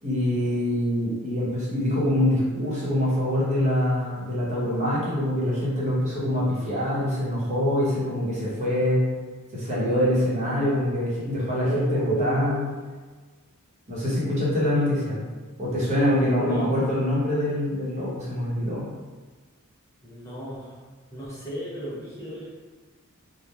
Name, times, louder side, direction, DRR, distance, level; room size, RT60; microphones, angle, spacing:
voice 1, 0.0-9.0 9.5-12.6 13.9-15.3 15.6-18.9, left 1 dB, 30° right, -8 dB, 0.8 m, -24 dB
voice 2, 11.6-12.7 16.3-16.9 20.0-20.8 21.1-22.5, right 1 dB, 15° left, -9 dB, 0.4 m, -32 dB
2.8 x 2.0 x 2.2 m, 1.4 s
head